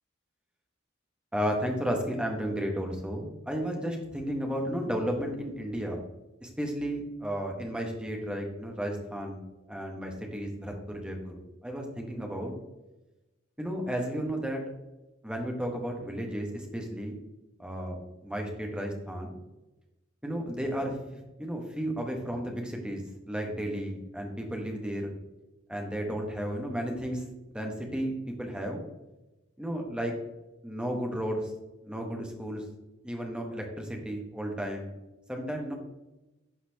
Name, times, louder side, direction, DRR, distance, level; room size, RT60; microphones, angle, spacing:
voice 1, 1.3-6.0 6.4-9.4 9.7-12.5 13.6-14.6 15.2-17.1 17.6-19.4 20.2-23.0 23.3-25.1 25.7-28.8 29.6-30.1 30.6-31.5 31.8-32.6 33.0-34.9 35.3-35.7, equal, 5° right, 1 dB, 1.1 m, -33 dB
11.5 x 4.2 x 2.8 m, 1.0 s
head